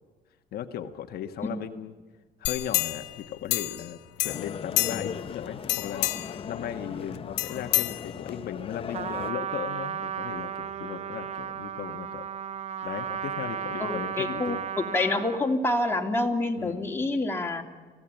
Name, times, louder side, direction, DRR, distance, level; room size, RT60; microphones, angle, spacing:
voice 1, 0.5-1.9 2.4-12.2 12.8-14.6 16.6-16.8, left 10 dB, 65° left, 5 dB, 1.3 m, -37 dB
sound 1, 2.5-3.9 4.2-5.3 5.6-6.4 7.4-8.5 9.0-9.1, left 18 dB, 90° left, 0.9 m, -29 dB
sound 2, 4.2-9.3, left 6 dB, 35° left, 0.8 m, -38 dB
Trumpet, 8.9-15.5, right 8 dB, 40° right, 0.8 m, -34 dB
voice 2, 13.8-17.6, left 2 dB, 15° left, 2 dB, 2.8 m, -27 dB
24.5 x 17.0 x 9.0 m, 1.4 s
cardioid pair, 110°, 17 cm